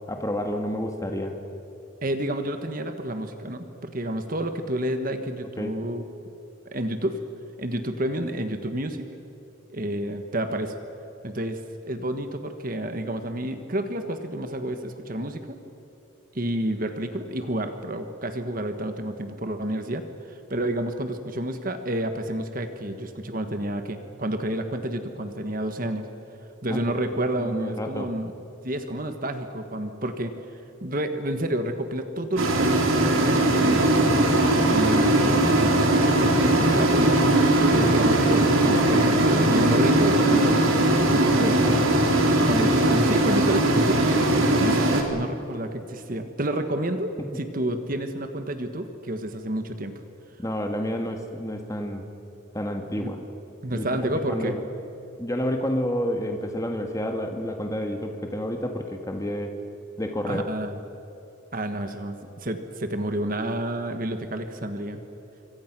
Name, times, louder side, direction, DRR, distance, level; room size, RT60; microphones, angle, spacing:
voice 1, 0.1-1.3 5.6-5.8 26.7-26.8 27.1-28.1 41.4-41.8 50.4-52.1 52.5-53.2 53.7-54.6 55.2-59.5 60.0-60.5, equal, 15° left, 4 dB, 1.7 m, -30 dB
voice 2, 2.0-6.1 6.7-7.2 7.6-9.1 9.7-10.7 11.2-11.6 11.8-15.6 16.3-26.1 26.6-28.3 28.6-30.3 30.8-34.1 34.5-37.1 37.7-41.6 42.5-49.9 53.0-53.1 53.6-54.6 60.3-60.8 61.5-65.0, right 1 dB, 45° right, 7 dB, 1.5 m, -30 dB
start idle off, 32.4-45.0, right 1 dB, 85° right, 3.4 m, -20 dB
26.5 x 24.5 x 6.1 m, 3.0 s
head